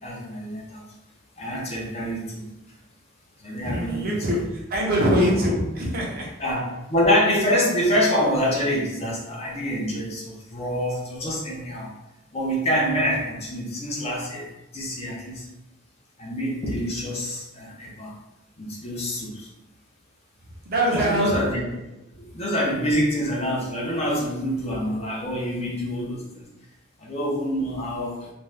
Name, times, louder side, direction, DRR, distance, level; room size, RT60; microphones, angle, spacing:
voice 1, 0.0-0.8 1.4-2.5 3.4-4.4 6.4-11.9 12.3-14.5 14.7-15.4 16.2-18.1 18.6-19.5 20.9-22.0 22.3-26.4 27.0-28.2, equal, 30° left, -4 dB, 0.6 m, -26 dB
voice 2, 3.6-4.4 4.7-6.3 20.7-21.4, equal, 50° right, -3 dB, 0.7 m, -23 dB
2.6 x 2.3 x 3.2 m, 0.95 s
head